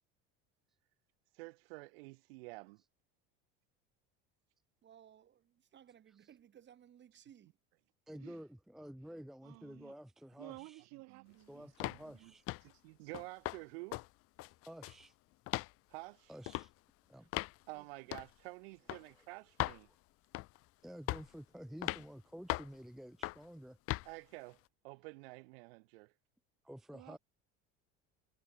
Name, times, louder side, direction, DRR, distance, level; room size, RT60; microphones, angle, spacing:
voice 1, 1.3-2.8 11.1-11.3 11.8-12.3 12.6-14.0 15.9-16.3 17.7-19.9 24.0-24.6 24.8-26.1, right 26 dB, 85° right, 1.0 m, -50 dB
voice 2, 4.8-7.6 8.1-8.2 17.7-18.2, right 9 dB, 40° right, 5.1 m, -61 dB
voice 3, 8.1-10.8 11.5-12.4 14.7-15.1 16.3-16.7 17.1-17.3 20.8-23.8 26.6-27.2, equal, ahead, 0.5 m, -50 dB
voice 4, 9.4-9.9 10.4-11.7 21.9-22.0 26.9-27.2, right 22 dB, 65° right, 3.0 m, -53 dB
sound 1, 11.8-12.0 12.5-12.7 13.1-13.6 13.9-14.1 14.4-15.0 15.5-15.7 16.5-16.7 17.3-17.6 18.1-18.3 18.9-19.0 19.6-19.8 20.3-20.6 21.1-21.4 21.8-22.1 22.5-22.8 23.2-23.5 23.9-24.1, left 20 dB, 50° left, 0.6 m, -38 dB
supercardioid pair, 110°, 29 cm